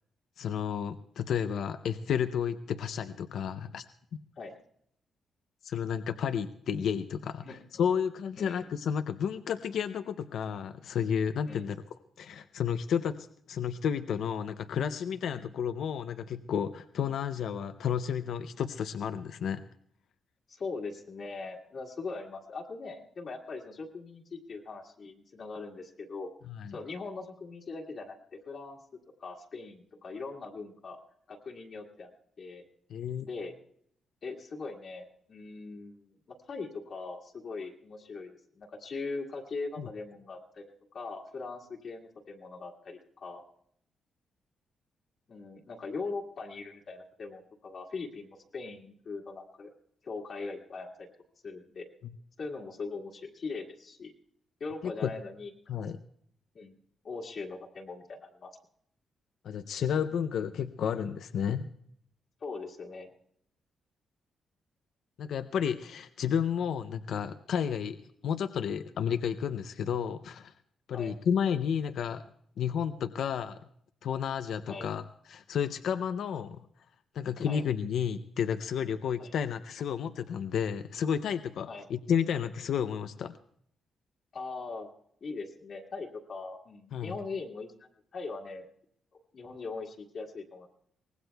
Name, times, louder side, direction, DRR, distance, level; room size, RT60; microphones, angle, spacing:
voice 1, 0.4-3.8 5.6-11.8 12.2-19.6 26.5-26.7 32.9-33.3 39.8-39.9 54.8-55.1 55.7-56.0 59.4-61.7 65.2-68.0 68.2-70.5 70.9-72.2 72.6-73.6 74.0-76.6 77.1-83.4 86.9-87.1, left 8 dB, 75° left, 10 dB, 0.5 m, -31 dB
voice 2, 8.4-8.7 11.5-11.7 15.3-15.5 17.0-17.1 20.5-26.3 26.7-28.8 29.2-31.0 31.3-32.1 32.4-32.6 33.2-33.5 34.2-40.6 40.9-43.4 45.3-49.7 50.0-51.1 51.4-51.9 52.4-54.1 54.6-55.5 56.5-56.8 57.0-58.5 62.4-63.1 70.9-71.1 74.7-74.9 77.4-77.6 79.2-79.3 81.7-81.9 84.3-84.9 85.2-88.7 89.3-90.7, left 4 dB, 50° left, -1 dB, 1.8 m, -41 dB
24.0 x 19.0 x 2.3 m, 0.68 s
cardioid pair, 130°, 0 cm